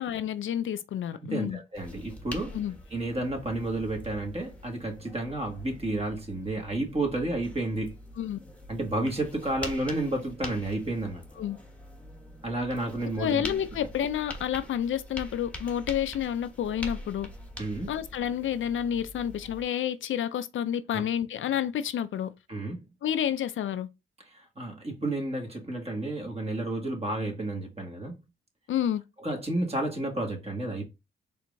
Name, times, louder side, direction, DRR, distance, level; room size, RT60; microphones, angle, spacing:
voice 1, 0.0-1.6 2.5-2.8 8.2-8.4 11.4-11.6 13.2-17.3 17.9-22.3 23.0-23.9 28.7-29.0, left 10 dB, 70° left, 0.4 m, -29 dB
voice 2, 1.3-2.6 2.9-7.9 8.7-11.2 12.4-13.4 17.6-17.9 20.9-21.0 22.5-22.8 24.3-28.2 29.2-30.9, right 2 dB, 30° right, 1.8 m, -31 dB
sound 1, 1.7-19.6, left 1 dB, 5° left, 1.2 m, -44 dB
4.4 x 3.5 x 2.6 m
cardioid pair, 65°, 21 cm